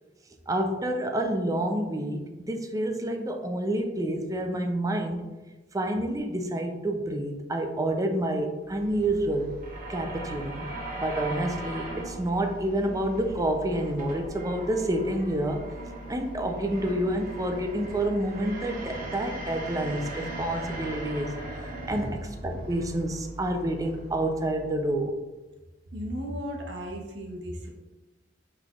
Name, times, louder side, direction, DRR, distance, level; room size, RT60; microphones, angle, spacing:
voice 1, 0.5-5.3 5.7-9.5 9.9-10.7 11.0-15.6 16.1-21.3 21.9-22.1 22.4-25.1, right 1 dB, 20° right, 4 dB, 0.4 m, -28 dB
sound 1, 8.6-25.0, right 1 dB, 50° right, 0.9 m, -39 dB
voice 2, 25.9-27.7, equal, 75° right, 1 dB, 0.9 m, -35 dB
5.8 x 3.3 x 2.4 m, 1.2 s
head